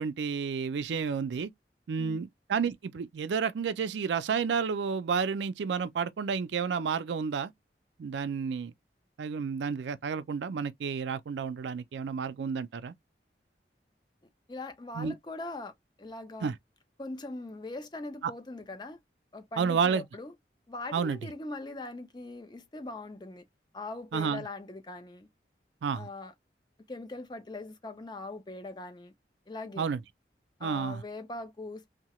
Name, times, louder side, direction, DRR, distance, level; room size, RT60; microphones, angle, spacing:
voice 1, 0.0-1.5 1.9-7.5 8.0-8.7 9.2-12.9 14.9-15.1 16.4-16.6 18.2-18.3 19.6-20.0 20.9-21.2 24.1-24.4 25.8-26.1 29.8-30.0 30.6-31.0, right 6 dB, 85° right, 0.4 m, -31 dB
voice 2, 14.5-15.7 16.0-16.5 17.0-19.0 19.3-20.3 20.7-23.4 23.7-25.3 25.9-26.3 26.9-29.1 29.5-29.9 30.6-31.8, left 2 dB, 25° left, 0.5 m, -41 dB
2.8 x 2.1 x 2.9 m
head